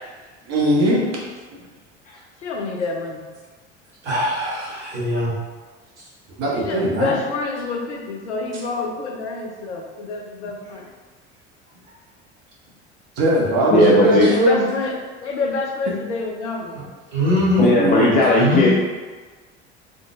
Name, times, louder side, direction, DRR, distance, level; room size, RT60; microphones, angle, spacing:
voice 1, 0.5-1.0 4.7-4.8 6.4-7.1 13.2-14.6 17.4-18.2, right 1 dB, 45° right, -3 dB, 1.1 m, -19 dB
voice 2, 2.4-3.2 6.5-10.9 14.2-14.9 15.2-16.8, left 3 dB, 80° left, 1 dB, 0.6 m, -28 dB
voice 3, 4.0-5.3 16.7-16.8 17.1-17.7 18.4-18.7, left 1 dB, 75° right, -6 dB, 1.3 m, -21 dB
voice 4, 13.7-14.3 17.6-18.7, left 2 dB, 25° left, -4 dB, 0.5 m, -16 dB
3.9 x 3.8 x 2.3 m, 1.4 s
figure-of-eight pair, 70°, 35 cm